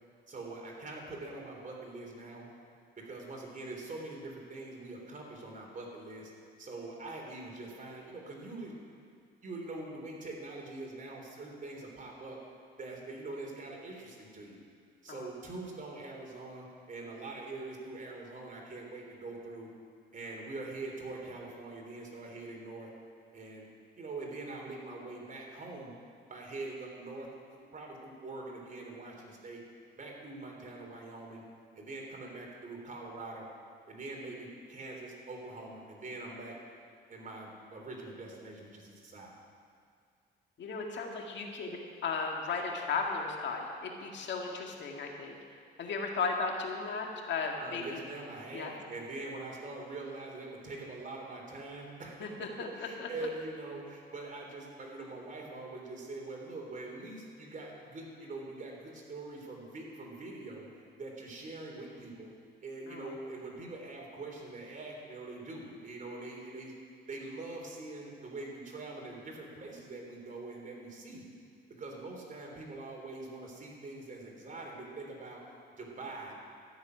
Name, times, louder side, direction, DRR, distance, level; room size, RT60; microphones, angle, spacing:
voice 1, 0.3-2.4 3.0-6.3 6.6-8.7 9.4-12.4 12.8-14.6 15.0-19.7 20.1-22.9 23.3-23.7 24.0-25.9 26.3-27.3 27.5-29.6 30.0-31.4 31.7-33.5 33.9-36.5 37.1-39.3 47.6-52.3 52.7-62.3 62.6-66.7 67.1-71.3 71.8-76.3, right 2 dB, 40° right, -1 dB, 3.4 m, -43 dB
voice 2, 40.6-45.4 45.8-48.0 48.5-48.8 52.2-52.7 53.0-53.1 62.9-63.1, left 4 dB, 65° left, 1 dB, 2.0 m, -35 dB
13.0 x 7.1 x 9.7 m, 2.2 s
cardioid pair, 90°, 20 cm